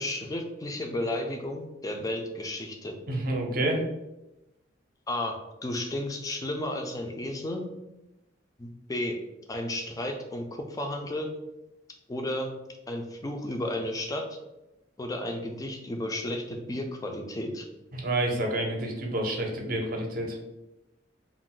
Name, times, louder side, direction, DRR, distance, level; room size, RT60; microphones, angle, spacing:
voice 1, 0.0-3.0 5.1-5.4 5.6-7.7 8.6-9.2 9.5-11.3 12.1-12.5 12.9-14.2 15.0-17.6, left 1 dB, 20° left, 4 dB, 0.3 m, -33 dB
voice 2, 3.1-3.8 17.9-20.4, right 1 dB, 50° right, 1 dB, 0.6 m, -29 dB
2.4 x 2.1 x 3.7 m, 0.94 s
head